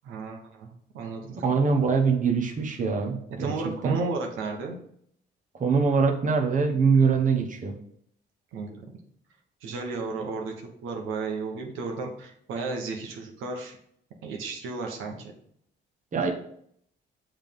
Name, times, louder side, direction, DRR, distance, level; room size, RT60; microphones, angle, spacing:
voice 1, 0.0-1.5 3.3-4.8 8.5-8.8 9.6-13.8 14.2-15.3, right 3 dB, 90° right, 2 dB, 1.3 m, -33 dB
voice 2, 1.4-3.5 3.8-4.0 5.6-7.7 16.1-16.3, right 5 dB, 40° right, 2 dB, 1.1 m, -23 dB
7.3 x 3.6 x 5.3 m, 0.67 s
cardioid pair, 90°, 20 cm